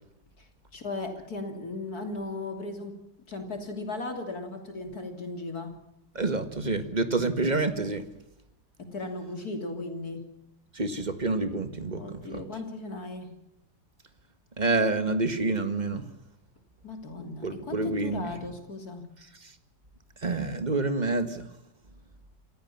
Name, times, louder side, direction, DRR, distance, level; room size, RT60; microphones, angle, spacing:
voice 1, 0.4-3.0 3.3-5.8 8.8-10.3 12.0-13.4 16.8-19.1, left 2 dB, 55° left, 5 dB, 3.5 m, -37 dB
voice 2, 6.2-8.1 10.7-12.4 14.6-16.1 17.4-18.3 19.4-19.5 20.2-21.5, right 3 dB, 25° right, 9 dB, 1.9 m, -28 dB
28.0 x 15.5 x 7.2 m, 0.82 s
omnidirectional pair, 1.9 m